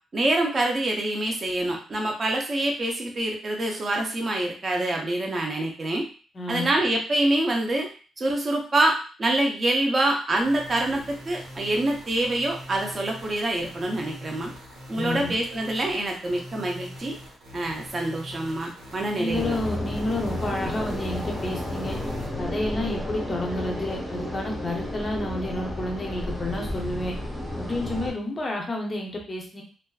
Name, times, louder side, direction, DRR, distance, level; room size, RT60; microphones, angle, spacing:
voice 1, 0.1-6.1 6.5-7.9 8.2-14.5 14.9-17.2 17.5-19.6, right 1 dB, 30° right, 1 dB, 0.5 m, -26 dB
voice 2, 6.3-6.7 14.9-15.3 19.2-22.0 22.4-27.2 27.5-29.6, left 1 dB, 25° left, 1 dB, 0.6 m, -30 dB
sound 1, 10.4-22.3, equal, 70° right, 1.2 m, -43 dB
sound 2, 19.3-28.1, left 1 dB, 5° left, 0.9 m, -32 dB
2.4 x 2.3 x 2.3 m, 0.38 s
cardioid pair, 160°, 0 cm